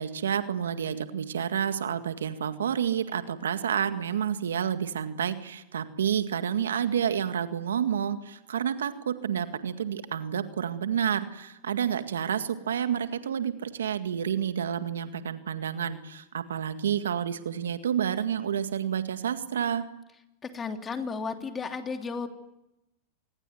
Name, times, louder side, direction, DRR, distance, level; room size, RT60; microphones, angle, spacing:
voice 1, 0.0-19.8, right 8 dB, 85° right, 9 dB, 1.9 m, -29 dB
voice 2, 20.4-22.3, left 5 dB, 20° left, 6 dB, 3.0 m, -33 dB
26.5 x 20.5 x 9.4 m, 0.92 s
hypercardioid pair, 110°, 0 cm